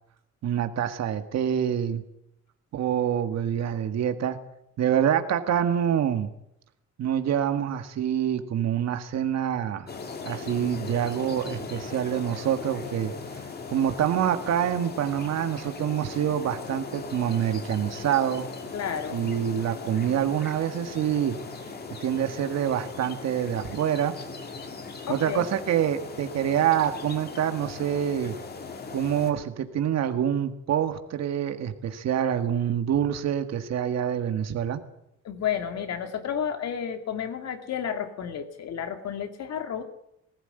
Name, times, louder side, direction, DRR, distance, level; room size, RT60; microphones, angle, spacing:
voice 1, 0.4-2.0 2.7-4.4 4.8-6.3 7.0-9.9 10.2-18.5 19.1-21.4 22.0-24.1 25.1-28.3 28.9-34.8, right 9 dB, 60° right, 8 dB, 1.7 m, -26 dB
sound 1, 9.9-29.3, left 4 dB, 35° left, 2.3 m, -39 dB
voice 2, 18.7-19.2 25.1-25.5 35.2-39.8, left 8 dB, 60° left, 6 dB, 2.5 m, -31 dB
19.5 x 16.0 x 9.1 m, 0.78 s
cardioid pair, 170°, 29 cm